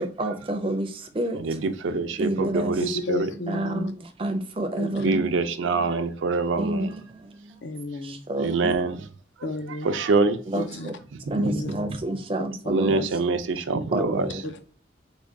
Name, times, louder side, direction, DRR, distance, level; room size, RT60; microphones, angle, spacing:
voice 1, 0.0-1.6 2.2-2.8 3.5-5.4 6.6-7.7 8.0-8.8 10.5-10.9 11.3-13.2 13.9-14.4, right 1 dB, 30° right, 0.5 m, -29 dB
voice 2, 1.8-3.3 5.0-6.9 8.4-8.9 9.8-10.4 11.4-11.5 12.7-14.3, right 3 dB, 85° right, 0.5 m, -24 dB
voice 3, 2.8-3.9 4.8-5.1 7.6-8.3 9.4-9.9 10.5-10.9 11.4-11.7 12.9-13.1 14.4-14.6, left 1 dB, 75° left, 0.5 m, -32 dB
3.6 x 2.2 x 3.4 m
head